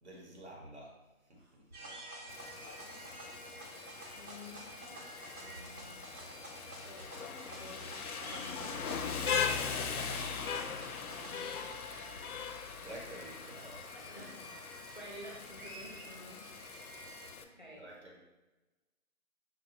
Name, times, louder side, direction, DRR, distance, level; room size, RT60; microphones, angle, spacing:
voice 1, 0.0-2.0 12.8-13.9 17.8-18.2, right 1 dB, 50° right, -1 dB, 1.1 m, -50 dB
sound 1, 1.7-17.3, right 1 dB, 85° right, 1.4 m, -50 dB
Rain, 2.3-17.4, left 6 dB, 90° left, 0.6 m, -40 dB
voice 2, 2.8-3.8 4.1-6.2 6.8-7.1 7.5-11.8 13.9-14.6 14.9-17.9, left 1 dB, 35° left, -3 dB, 0.6 m, -53 dB
sound 2, 7.7-13.8, left 1 dB, 20° right, 0.8 m, -59 dB
5.9 x 2.3 x 2.8 m, 1.1 s
hypercardioid pair, 170°, 43 cm